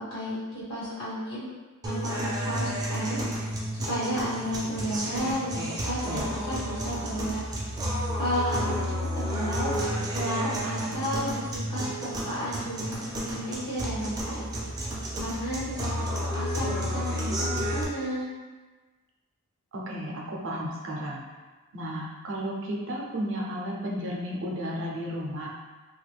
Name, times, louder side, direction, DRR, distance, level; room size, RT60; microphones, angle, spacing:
voice 1, 0.0-1.5 1.8-7.4 8.1-13.1 13.3-14.6 15.2-18.3, equal, 60° left, -9 dB, 1.2 m, -33 dB
sound 1, 1.8-17.8, equal, 15° right, 0.5 m, -31 dB
voice 2, 19.7-21.2 21.7-25.5, equal, 55° right, -2 dB, 0.6 m, -33 dB
3.0 x 2.3 x 3.4 m, 1.3 s
head